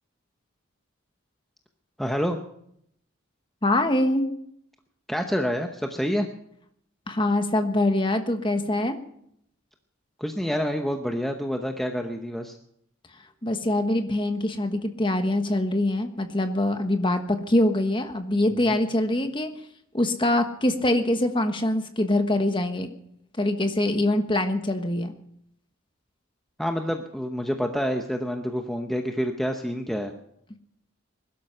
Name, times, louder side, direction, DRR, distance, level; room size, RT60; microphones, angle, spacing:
voice 1, 2.0-2.4 5.1-6.3 10.2-12.6 18.5-18.7 26.6-30.1, equal, ahead, 4 dB, 0.9 m, -28 dB
voice 2, 3.6-4.3 7.1-9.0 13.4-19.5 19.9-22.9 23.4-25.1, left 1 dB, 25° left, 7 dB, 1.3 m, -24 dB
21.0 x 12.0 x 5.7 m, 0.72 s
head